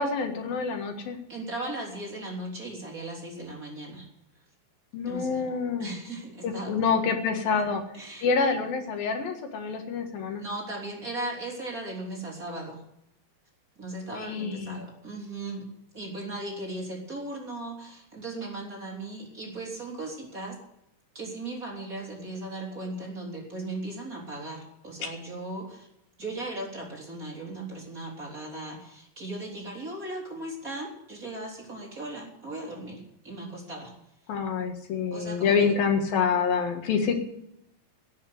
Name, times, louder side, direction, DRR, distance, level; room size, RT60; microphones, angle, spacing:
voice 1, 0.0-1.2 4.9-5.9 6.4-7.8 8.2-10.4 14.3-14.8 34.3-37.2, left 5 dB, 80° left, 5 dB, 3.6 m, -27 dB
voice 2, 1.3-4.1 5.1-5.5 5.8-6.8 7.6-7.7 7.9-8.3 10.4-12.8 13.8-15.7 15.9-20.6 21.2-25.9 26.2-33.9 35.1-35.8, right 2 dB, 25° right, -2 dB, 3.4 m, -37 dB
16.5 x 7.9 x 9.3 m, 0.79 s
omnidirectional pair, 4.0 m